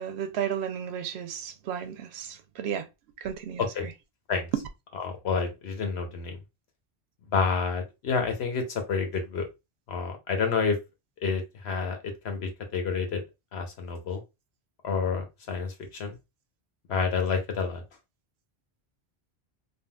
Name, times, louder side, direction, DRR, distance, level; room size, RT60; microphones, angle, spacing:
voice 1, 0.0-2.9 3.2-3.9, right 8 dB, 90° right, 0.9 m, -34 dB
voice 2, 5.0-6.4 7.3-9.5 9.9-10.8 11.2-13.2 13.5-14.2 14.8-16.2 16.9-17.8, left 5 dB, 85° left, 1.1 m, -29 dB
3.5 x 2.3 x 2.2 m
omnidirectional pair, 1.0 m